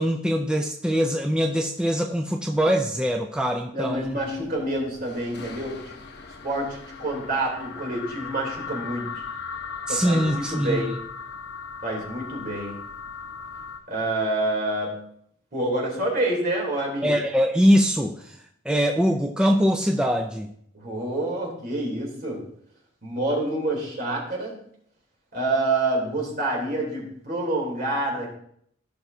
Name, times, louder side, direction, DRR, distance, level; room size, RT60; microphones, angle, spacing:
voice 1, 0.0-4.2 9.9-10.9 17.0-18.3 18.7-20.5, equal, 5° right, 3 dB, 0.5 m, -22 dB
voice 2, 3.7-6.0 6.4-9.3 9.9-10.9 11.8-12.8 13.9-14.9 15.5-17.2 20.7-22.4 23.0-24.6 25.3-28.3, right 2 dB, 50° right, -2 dB, 3.2 m, -27 dB
sound 1, 3.9-13.8, left 5 dB, 60° left, 1.0 m, -38 dB
15.5 x 6.0 x 2.7 m, 0.68 s
head